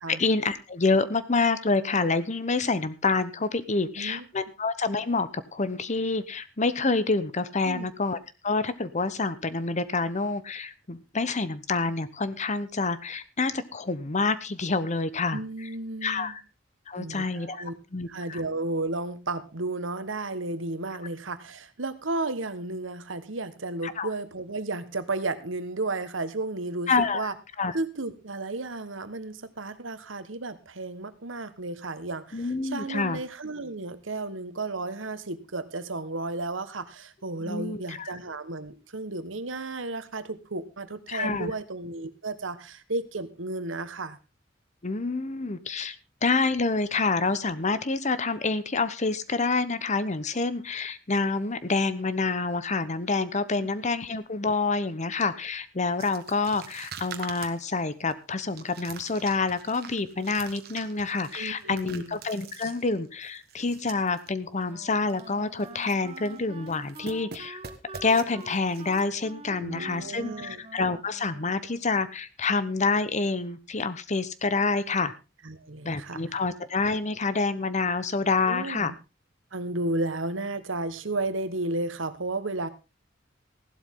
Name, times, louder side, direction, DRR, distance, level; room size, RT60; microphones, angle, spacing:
voice 1, 0.1-8.2 8.4-15.4 16.0-16.4 16.9-17.6 17.9-18.4 23.8-24.1 26.9-27.3 27.6-27.7 32.3-33.2 37.4-38.1 41.1-41.5 44.8-46.0 46.2-67.6 68.0-75.1 75.8-78.9, left 3 dB, 40° left, 14 dB, 1.0 m, -27 dB
voice 2, 15.3-16.4 17.0-17.7 18.1-27.3 27.7-44.2 61.3-62.2 69.5-70.6 75.4-76.4 78.5-78.9 79.5-82.7, right 2 dB, 80° right, 12 dB, 1.4 m, -33 dB
sound 1, 56.0-64.3 64.6-64.7 65.0-65.3 65.6-66.4 66.7-69.0, right 6 dB, 55° right, 1.6 m, -45 dB
Wind instrument woodwind instrument, 64.7-72.1, right 3 dB, 30° right, 1.0 m, -46 dB
16.0 x 12.0 x 3.7 m, 0.29 s
head